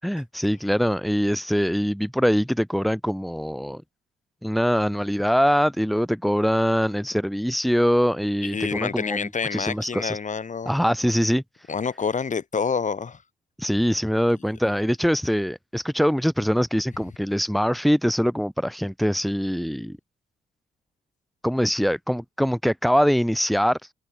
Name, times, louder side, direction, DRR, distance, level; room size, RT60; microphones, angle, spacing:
voice 1, 0.0-3.8 4.4-10.2 10.7-11.4 13.6-20.0 21.4-23.8, equal, ahead, 7.1 m, -23 dB
voice 2, 8.4-10.7 11.7-13.2, left 5 dB, 40° left, 5.6 m, -27 dB
cardioid pair, 90°, 20 cm